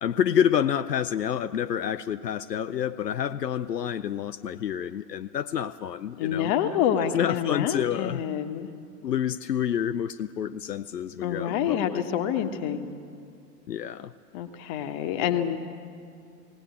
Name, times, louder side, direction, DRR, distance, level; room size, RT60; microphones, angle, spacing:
voice 1, 0.0-6.5 7.1-8.2 9.0-12.0 13.7-14.1, left 9 dB, 80° left, 11 dB, 0.6 m, -28 dB
voice 2, 6.2-8.7 11.2-12.9 14.3-15.6, left 9 dB, 35° left, 8 dB, 1.4 m, -27 dB
19.0 x 18.0 x 8.4 m, 2.4 s
figure-of-eight pair, 90°, 48 cm